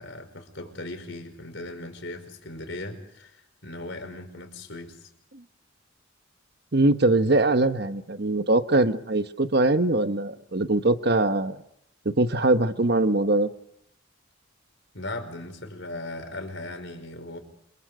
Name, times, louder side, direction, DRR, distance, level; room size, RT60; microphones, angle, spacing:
voice 1, 0.0-5.1 14.9-17.4, left 2 dB, 65° left, 6 dB, 5.3 m, -38 dB
voice 2, 6.7-11.6 12.0-13.5, right 2 dB, 55° right, 10 dB, 1.2 m, -22 dB
28.5 x 28.0 x 5.0 m, 0.73 s
head